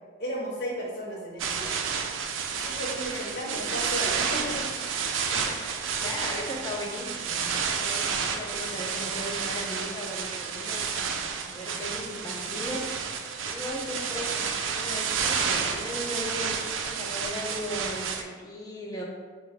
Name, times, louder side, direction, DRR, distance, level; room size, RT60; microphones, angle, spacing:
voice 1, 0.2-1.8 2.5-4.7 5.3-5.6, equal, 55° left, -4 dB, 0.9 m, -34 dB
sound 1, 1.4-18.2, right 6 dB, 80° right, 0.4 m, -30 dB
voice 2, 5.4-13.0 13.4-19.0, left 1 dB, 20° left, -2 dB, 0.4 m, -37 dB
5.6 x 2.3 x 3.3 m, 1.5 s
head